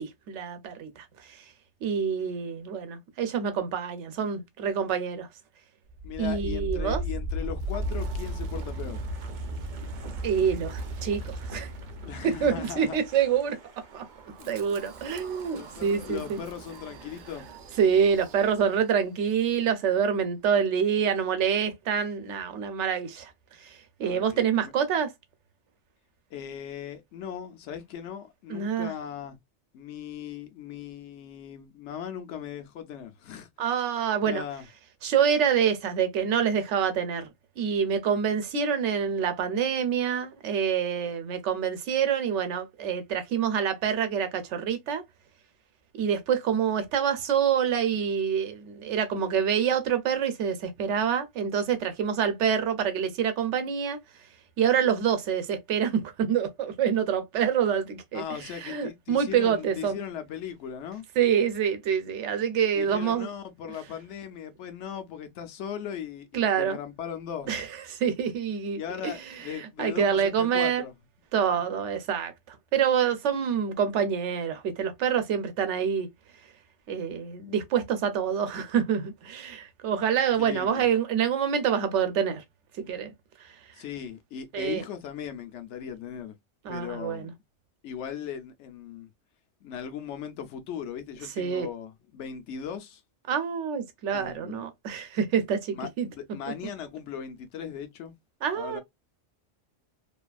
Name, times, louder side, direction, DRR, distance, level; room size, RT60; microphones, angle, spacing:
voice 1, 0.0-1.4 1.8-5.3 6.2-7.0 10.2-11.7 12.2-13.6 13.9-14.0 14.5-16.4 17.8-23.3 23.6-25.1 28.5-28.9 33.6-34.4 35.0-37.3 37.6-45.0 45.9-54.0 54.6-60.0 61.2-63.3 66.3-66.8 67.5-70.8 71.3-76.1 76.9-82.4 82.8-83.1 83.4-83.5 84.5-84.8 86.6-87.3 91.4-91.7 93.3-96.1 98.4-98.8, right 7 dB, 85° right, 1.0 m, -26 dB
Wind, 5.9-18.9, right 1 dB, 60° right, 0.5 m, -37 dB
voice 2, 6.0-9.0 12.0-13.0 14.4-14.5 15.5-17.5 24.0-24.7 26.3-29.4 29.7-33.5 34.3-34.7 58.1-61.0 62.7-67.5 68.8-70.9 71.5-71.6 80.4-80.9 83.7-86.4 86.7-87.3 87.8-89.1 89.6-93.0 94.1-94.6 95.7-98.1 98.5-98.8, left 8 dB, 85° left, 0.9 m, -38 dB
2.7 x 2.4 x 2.2 m
omnidirectional pair, 1.2 m